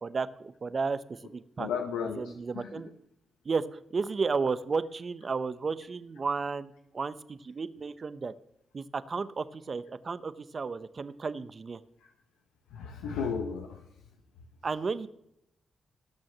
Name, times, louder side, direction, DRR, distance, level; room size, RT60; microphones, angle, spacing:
voice 1, 0.0-1.7 2.2-2.9 3.4-8.3 8.7-11.8 14.6-15.1, right 4 dB, 50° right, 14 dB, 0.9 m, -33 dB
voice 2, 1.6-2.7 12.7-13.8, left 6 dB, 90° left, 3 dB, 1.1 m, -34 dB
18.5 x 6.4 x 7.4 m, 0.81 s
supercardioid pair, 45°, 0 cm